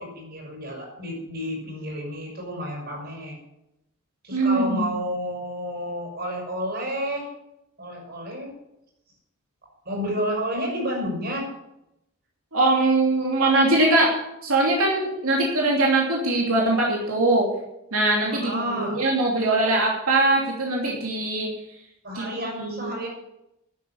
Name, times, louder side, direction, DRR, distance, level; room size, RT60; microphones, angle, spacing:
voice 1, 0.0-3.3 4.2-7.3 7.8-8.5 9.8-11.4 18.3-19.0 22.0-23.1, equal, 55° right, -2 dB, 5.6 m, -30 dB
voice 2, 4.3-4.9 12.5-14.2 14.4-17.5 17.9-21.5 22.1-22.3 22.6-22.9, right 2 dB, 90° right, -2 dB, 2.8 m, -21 dB
12.5 x 8.4 x 7.9 m, 0.84 s
head